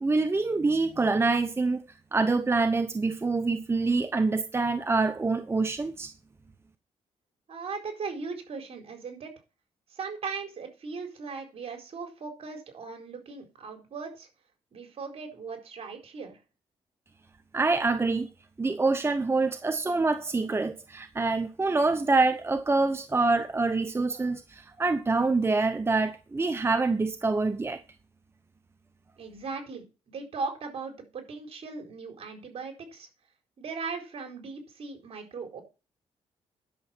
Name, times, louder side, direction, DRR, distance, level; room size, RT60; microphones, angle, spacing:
voice 1, 0.0-1.8 2.1-6.1 17.5-18.3 18.6-27.8, right 3 dB, 20° right, 0.8 m, -26 dB
voice 2, 7.5-9.3 9.9-14.3 14.7-16.4 29.2-29.8 30.1-33.1 33.6-35.6, right 4 dB, 60° right, 4.3 m, -38 dB
11.0 x 6.9 x 6.0 m
cardioid pair, 90°, 11 cm